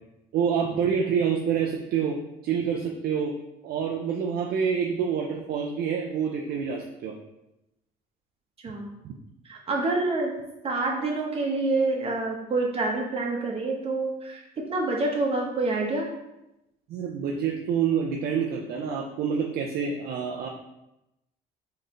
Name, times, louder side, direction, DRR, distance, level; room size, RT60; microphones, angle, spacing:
voice 1, 0.3-3.4 3.6-7.2 9.0-9.1 16.9-20.5, right 7 dB, 65° right, 0 dB, 0.5 m, -27 dB
voice 2, 9.4-10.3 10.6-14.4 14.7-16.1, right 2 dB, 35° right, 0 dB, 1.1 m, -27 dB
4.1 x 3.2 x 3.8 m, 0.90 s
cardioid pair, 110°, 17 cm